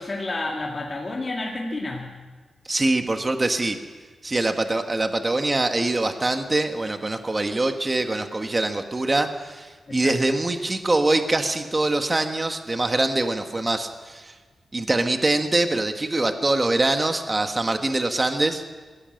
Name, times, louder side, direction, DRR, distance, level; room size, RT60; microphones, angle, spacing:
voice 1, 0.0-2.1 9.9-10.2, left 2 dB, 35° left, -2 dB, 2.2 m, -30 dB
voice 2, 2.6-3.8 4.2-14.3 14.7-18.6, right 2 dB, 25° right, 6 dB, 1.3 m, -24 dB
20.5 x 16.5 x 7.7 m, 1.4 s
wide cardioid pair, 110°, 0 cm